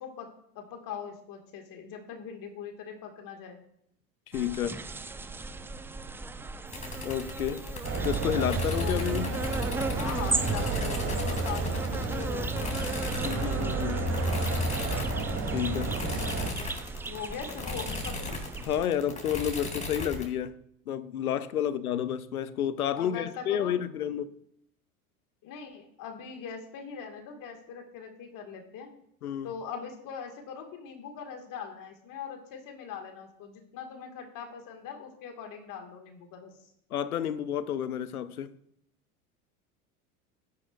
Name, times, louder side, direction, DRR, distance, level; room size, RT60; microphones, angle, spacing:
voice 1, 0.0-3.6 8.8-9.3 10.0-12.8 17.0-18.4 21.6-21.7 22.9-23.8 25.4-28.9 29.4-36.5, left 7 dB, 45° left, 2.1 m, -41 dB
voice 2, 4.3-4.8 7.0-7.6 8.0-9.4 13.2-14.1 15.5-15.9 18.6-20.5 20.9-24.3 29.2-29.5 36.9-38.5, left 9 dB, 85° left, 0.7 m, -30 dB
sound 1, 4.3-18.9, right 3 dB, 5° right, 0.3 m, -37 dB
sound 2, 6.7-20.2, left 3 dB, 15° left, 2.6 m, -38 dB
sound 3, 7.8-16.5, right 3 dB, 35° right, 3.1 m, -31 dB
12.0 x 10.5 x 2.6 m
hypercardioid pair, 80°, 43 cm